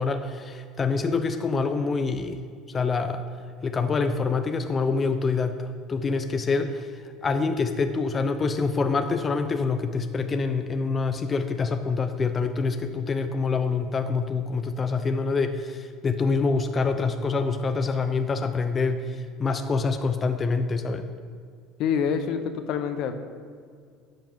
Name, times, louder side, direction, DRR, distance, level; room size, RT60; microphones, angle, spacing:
voice 1, 0.0-2.4 2.7-3.2 3.6-21.0, left 4 dB, 25° left, 7 dB, 0.6 m, -26 dB
voice 2, 21.8-23.2, left 7 dB, 60° left, 9 dB, 0.9 m, -26 dB
11.0 x 5.8 x 7.0 m, 2.1 s
supercardioid pair, 110°, 0 cm